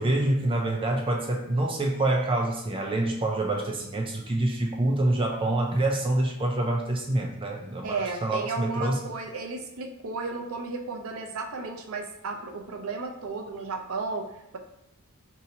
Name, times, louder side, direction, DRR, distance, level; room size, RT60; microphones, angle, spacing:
voice 1, 0.0-9.0, right 1 dB, 25° right, 1 dB, 0.4 m, -26 dB
voice 2, 7.8-14.6, right 3 dB, 80° right, 3 dB, 0.6 m, -34 dB
5.0 x 2.8 x 2.8 m, 0.82 s
head